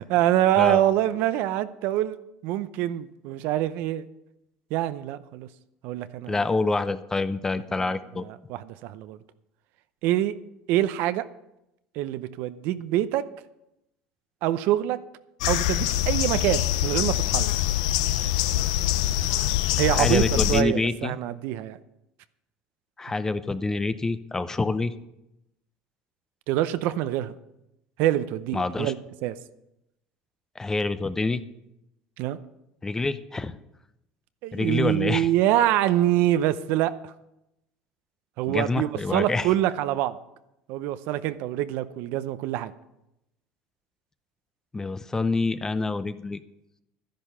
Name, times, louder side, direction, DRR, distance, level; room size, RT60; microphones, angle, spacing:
voice 1, 0.0-2.2 2.4-4.1 4.7-5.5 5.8-6.4 8.5-9.2 10.0-10.4 10.7-11.2 12.0-13.2 14.4-15.0 15.5-17.5 19.8-21.8 26.5-27.3 28.0-29.0 29.2-29.3 32.2-32.4 34.4-37.1 38.4-40.2 40.7-42.7, right 13 dB, 70° right, 13 dB, 0.7 m, -25 dB
voice 2, 6.3-8.3 19.9-21.2 23.0-24.9 28.5-28.9 30.6-31.4 32.8-33.6 34.5-35.3 38.5-39.5 44.7-46.4, left 3 dB, 15° left, 13 dB, 0.6 m, -27 dB
sound 1, 15.4-20.6, left 13 dB, 90° left, 0.6 m, -24 dB
12.0 x 10.5 x 5.6 m, 0.87 s
supercardioid pair, 115°, 3 cm